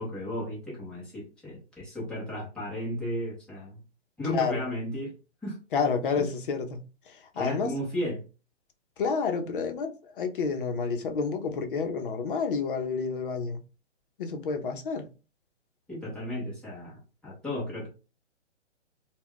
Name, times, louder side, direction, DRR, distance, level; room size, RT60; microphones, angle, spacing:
voice 1, 0.0-3.8 4.2-5.1 5.4-5.6 6.1-6.3 7.3-8.2 15.9-17.9, equal, 5° left, 0.6 m, -34 dB
voice 2, 4.3-4.6 5.7-6.8 7.1-7.7 9.0-13.6 14.2-15.1, left 5 dB, 45° left, 0.6 m, -29 dB
2.2 x 2.2 x 3.6 m
hypercardioid pair, 145°, 35 cm